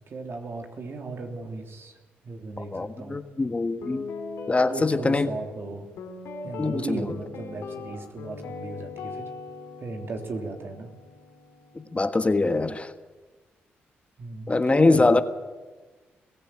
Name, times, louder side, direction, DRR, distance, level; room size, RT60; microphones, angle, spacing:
voice 1, 0.1-2.0 2.2-3.2 4.7-5.9 6.4-9.3 9.8-10.9 14.2-15.2, right 3 dB, 55° right, 3.3 m, -36 dB
voice 2, 2.6-4.0 4.5-5.3 6.6-7.1 11.9-12.9 14.5-15.2, left 3 dB, 25° left, 1.4 m, -23 dB
Guitar, 3.8-12.0, left 4 dB, 75° left, 3.3 m, -40 dB
21.5 x 15.0 x 8.8 m
supercardioid pair, 55°, 5 cm